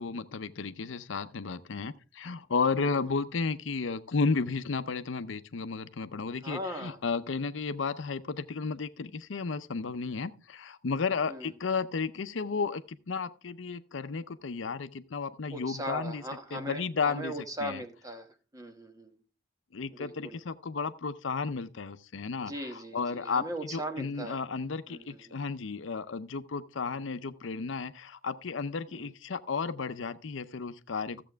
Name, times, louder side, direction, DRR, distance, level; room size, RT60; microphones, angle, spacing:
voice 1, 0.0-16.2 16.5-17.8 19.7-31.2, left 4 dB, 75° left, 0.6 m, -33 dB
voice 2, 6.4-7.0 11.3-11.5 15.5-18.3 18.5-19.2 19.9-20.4 22.4-24.4 24.9-25.4 28.9-29.1, right 1 dB, 20° right, 1.1 m, -39 dB
14.0 x 7.6 x 3.4 m
head